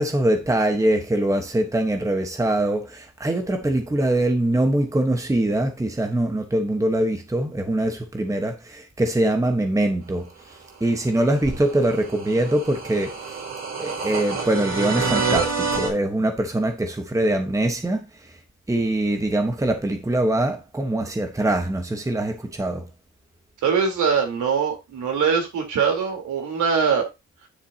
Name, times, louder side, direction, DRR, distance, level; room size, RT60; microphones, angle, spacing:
voice 1, 0.0-13.4 13.8-18.1 18.7-22.8, right 1 dB, 10° right, 1.2 m, -23 dB
sound 1, 11.1-15.9, right 4 dB, 60° right, 4.0 m, -27 dB
voice 2, 23.6-27.1, right 6 dB, 75° right, 3.7 m, -22 dB
10.0 x 7.3 x 2.9 m
cardioid pair, 90°, 30 cm